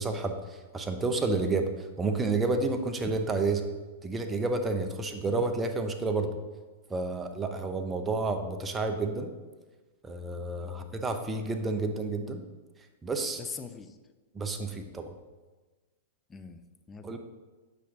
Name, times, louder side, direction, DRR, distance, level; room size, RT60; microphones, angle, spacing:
voice 1, 0.0-3.7 4.0-6.4 6.9-9.3 10.0-12.4 13.0-13.4 14.3-15.1 17.0-17.2, right 3 dB, 15° right, 6 dB, 0.8 m, -30 dB
voice 2, 13.4-14.0 16.3-17.2, left 5 dB, 20° left, 8 dB, 0.6 m, -43 dB
8.5 x 5.9 x 3.8 m, 1.3 s
hypercardioid pair, 115°, 0 cm